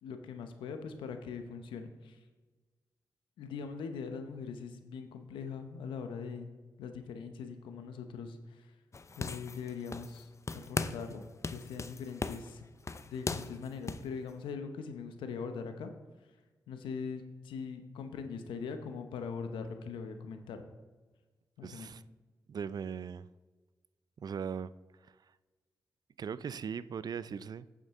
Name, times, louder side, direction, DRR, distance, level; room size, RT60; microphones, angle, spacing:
voice 1, 0.0-2.2 3.4-6.5 6.8-8.7 9.2-11.2 11.5-12.6 13.1-15.9 16.7-20.7 21.6-21.9, left 5 dB, 85° left, 7 dB, 0.8 m, -41 dB
sound 1, 8.9-10.2 10.5-11.1 11.4-14.1, left 4 dB, 35° left, 0.6 m, -38 dB
voice 2, 21.6-22.0 22.5-23.3 24.2-24.7 25.0-25.2 26.2-27.8, right 7 dB, 55° right, 17 dB, 0.4 m, -39 dB
8.4 x 7.4 x 3.7 m, 1.3 s
supercardioid pair, 40°, 8 cm